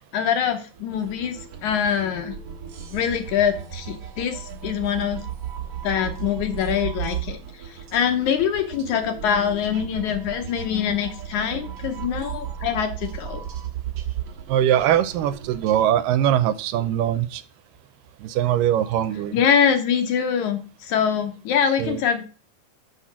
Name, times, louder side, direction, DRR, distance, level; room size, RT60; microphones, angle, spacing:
voice 1, 0.1-2.3 2.9-5.2 5.8-7.4 7.7-13.4 19.3-22.2, left 8 dB, 75° left, 6 dB, 2.1 m, -24 dB
sound 1, 0.7-15.8, right 9 dB, 55° right, 1.8 m, -35 dB
voice 2, 14.5-17.4 18.2-19.4 21.8-22.0, right 11 dB, 85° right, 13 dB, 2.2 m, -21 dB
6.6 x 5.7 x 6.1 m, 0.36 s
omnidirectional pair, 3.9 m